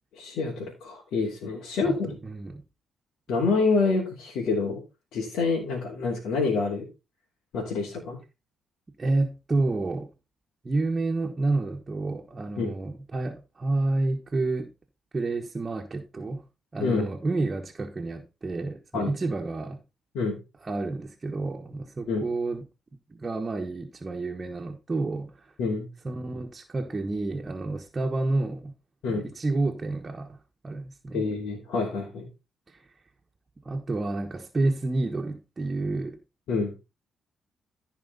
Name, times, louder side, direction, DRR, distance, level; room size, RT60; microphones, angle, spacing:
voice 1, 0.1-2.2 3.3-4.8 5.1-6.9 7.5-8.2 12.6-12.7 16.8-17.0 18.9-19.1 20.1-20.4 22.1-22.2 25.6-25.9 29.0-29.2 31.1-32.3 36.5-36.7, left 4 dB, 85° left, 2.9 m, -27 dB
voice 2, 2.2-2.6 9.0-10.1 10.6-14.7 15.1-16.4 16.7-19.8 20.6-22.7 23.1-25.5 26.0-28.7 29.1-30.4 30.6-31.3 32.7-32.9 33.6-36.2, right 2 dB, 30° right, 1.3 m, -29 dB
14.5 x 5.0 x 4.1 m
cardioid pair, 80°, 0 cm